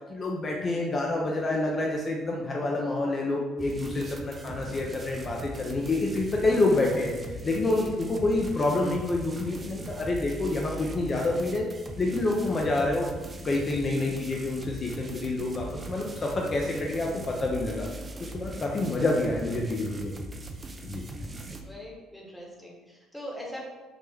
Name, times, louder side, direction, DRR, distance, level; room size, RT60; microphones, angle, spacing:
voice 1, 0.1-11.7 12.0-13.1 13.4-17.9 18.2-20.1 20.8-21.0, left 2 dB, 40° left, -1 dB, 0.4 m, -28 dB
sound 1, 3.6-21.6, right 2 dB, 30° right, 0.4 m, -40 dB
voice 2, 7.5-7.9 21.6-23.7, equal, ahead, -3 dB, 0.9 m, -41 dB
3.3 x 2.0 x 3.4 m, 1.2 s
supercardioid pair, 70°, 0 cm